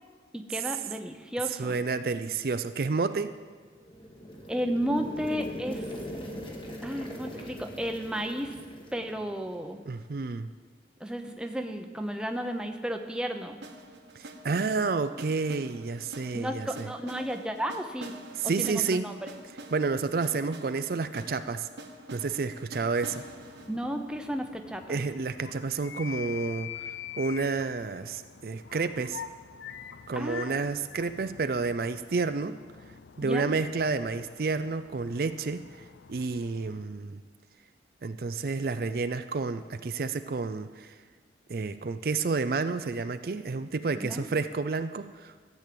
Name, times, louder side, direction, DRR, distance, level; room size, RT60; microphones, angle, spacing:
voice 1, 0.3-1.8 4.5-5.9 6.8-8.6 8.9-9.8 11.0-13.6 16.3-19.3 23.7-25.0 30.1-30.6 33.2-33.5 44.0-44.3, equal, 5° right, 5 dB, 0.7 m, -33 dB
voice 2, 1.6-3.3 9.9-10.5 14.2-16.9 18.4-19.1 19.7-21.7 22.1-23.2 24.9-29.2 30.1-32.6 33.2-35.6 36.1-37.2 38.0-41.0 41.5-45.3, right 4 dB, 55° right, 10 dB, 0.4 m, -30 dB
sound 1, 3.7-9.7, equal, 30° left, 1.5 m, -41 dB
sound 2, 13.6-25.5, right 1 dB, 85° right, 1.3 m, -47 dB
sound 3, 22.9-36.9, left 8 dB, 85° left, 0.5 m, -46 dB
13.5 x 8.3 x 7.6 m, 1.5 s
head